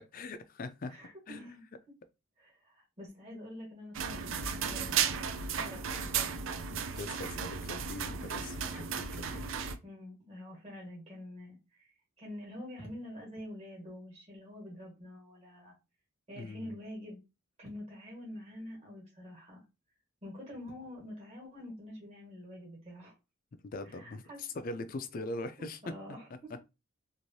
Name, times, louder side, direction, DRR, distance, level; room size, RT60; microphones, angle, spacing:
voice 1, 0.1-0.9 1.3-1.5 6.7-9.5 16.4-16.7 23.6-25.8, left 2 dB, 45° left, 0.4 m, -41 dB
voice 2, 0.9-1.6 2.4-6.4 9.8-15.7 16.3-17.2 17.6-19.6 20.2-23.1 23.8-24.4 25.6-26.6, left 1 dB, 30° right, 1.4 m, -47 dB
sound 1, 3.9-9.8, right 7 dB, 70° right, 0.4 m, -34 dB
3.1 x 2.6 x 2.6 m
head